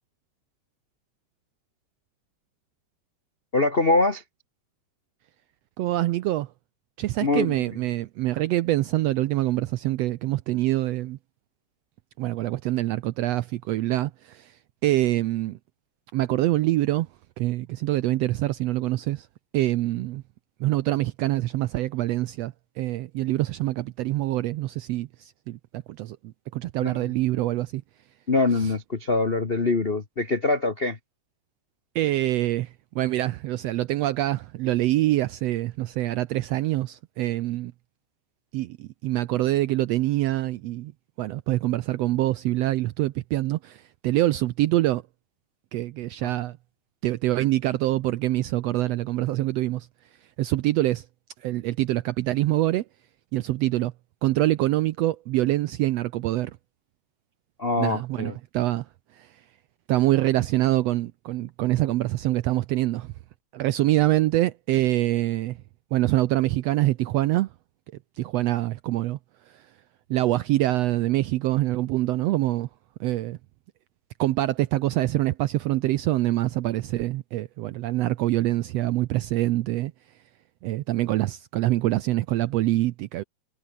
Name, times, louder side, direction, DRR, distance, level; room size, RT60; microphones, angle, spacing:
voice 1, 3.5-4.2 7.2-7.6 26.8-27.1 28.3-31.0 57.6-58.3, left 3 dB, 65° left, 0.5 m, -24 dB
voice 2, 5.8-6.5 7.0-11.2 12.2-14.5 14.8-15.6 16.1-17.1 17.4-19.3 19.5-20.2 20.6-26.2 26.5-27.8 28.6-28.7 31.9-37.7 38.5-40.9 41.2-45.0 45.7-46.6 47.0-49.9 50.4-51.0 51.4-52.8 53.3-53.9 54.2-56.6 57.8-58.9 59.1-59.3 59.9-63.1 63.5-65.6 65.9-67.5 68.2-69.2 69.5-69.6 70.1-72.7 73.0-73.4 74.2-79.9 80.6-83.2, right 16 dB, 80° right, 1.5 m, -25 dB
omnidirectional pair, 3.6 m